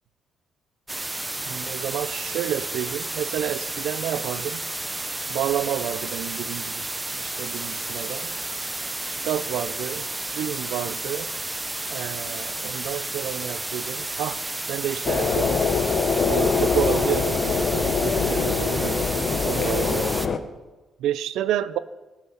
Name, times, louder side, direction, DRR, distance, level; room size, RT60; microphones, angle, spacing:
sound 1, 0.9-20.3, right 2 dB, 15° right, 0.6 m, -32 dB
voice 1, 1.5-4.6 5.3-6.9 7.2-8.3 9.2-10.0 10.3-11.3 11.9-14.4 14.7-15.7 16.3-20.1 21.0-21.8, right 11 dB, 85° right, 15 dB, 0.5 m, -30 dB
sound 2, 15.0-20.4, left 5 dB, 45° left, 1.0 m, -23 dB
14.0 x 5.9 x 8.2 m, 1.1 s
cardioid pair, 90°, 0 cm